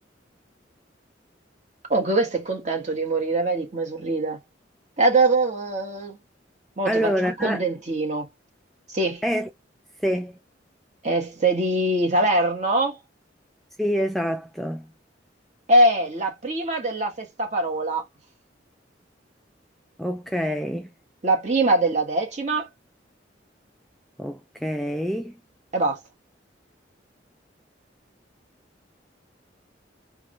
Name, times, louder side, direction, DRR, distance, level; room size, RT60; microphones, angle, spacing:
voice 1, 1.9-4.4 5.0-6.2 6.8-8.3 8.9-9.2 11.0-13.0 15.7-18.0 21.2-22.7 25.7-26.0, right 2 dB, 40° right, 1.4 m, -23 dB
voice 2, 6.9-7.6 9.2-9.5 10.0-10.4 13.8-14.9 20.0-20.9 24.2-25.4, equal, ahead, 0.4 m, -26 dB
3.6 x 2.3 x 3.2 m
head